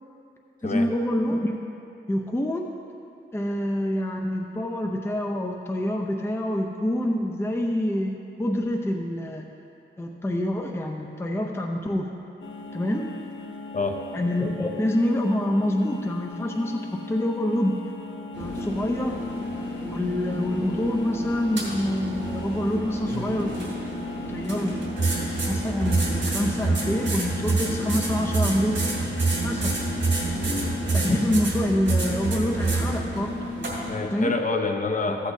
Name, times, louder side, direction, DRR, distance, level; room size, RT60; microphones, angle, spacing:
voice 1, 0.6-1.5 2.1-2.7 3.3-9.4 10.0-12.2 12.7-13.1 14.1-17.8 18.4-19.2 19.8-23.8 24.3-24.8 25.5-28.8 29.4-29.8 30.9-33.4 34.1-34.3 35.1-35.2, left 1 dB, 10° left, 1 dB, 0.5 m, -26 dB
sound 1, 12.4-31.3, left 2 dB, 75° left, 0.7 m, -40 dB
sound 2, 18.3-34.0, right 2 dB, 65° right, 2.4 m, -28 dB
voice 2, 30.4-30.8 33.9-35.3, left 3 dB, 40° left, 4 dB, 0.8 m, -27 dB
14.5 x 8.1 x 2.7 m, 2.7 s
wide cardioid pair, 85°, 20 cm